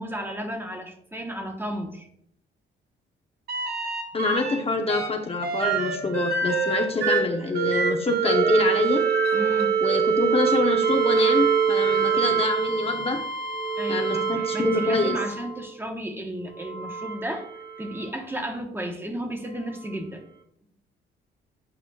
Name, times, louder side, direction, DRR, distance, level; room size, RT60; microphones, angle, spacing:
voice 1, 0.0-2.1 9.3-9.8 13.8-17.5 17.8-20.3, right 1 dB, 10° right, 4 dB, 1.0 m, -33 dB
sound 1, 3.5-4.6 4.9-15.7 16.5-18.1 19.8-19.9, right 6 dB, 55° right, 1.3 m, -25 dB
voice 2, 4.1-9.0 9.8-13.2 13.9-15.2, left 3 dB, 30° left, 3 dB, 0.8 m, -26 dB
8.6 x 4.9 x 2.3 m, 0.71 s
cardioid pair, 90°, 20 cm